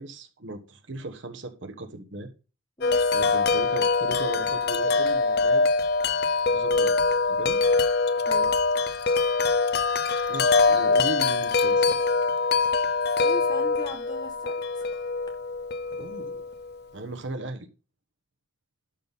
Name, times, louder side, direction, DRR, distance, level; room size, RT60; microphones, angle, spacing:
voice 1, 0.0-2.3 3.1-5.6 6.5-7.0 7.2-7.6 10.3-12.0 16.0-16.4 16.9-17.7, right 2 dB, 70° right, 1.2 m, -37 dB
Wind chime, 2.8-16.8, left 4 dB, 55° left, 0.6 m, -24 dB
voice 2, 2.8-3.2 8.3-8.6 13.2-14.5, left 1 dB, 20° left, 1.7 m, -39 dB
11.5 x 4.1 x 5.3 m
head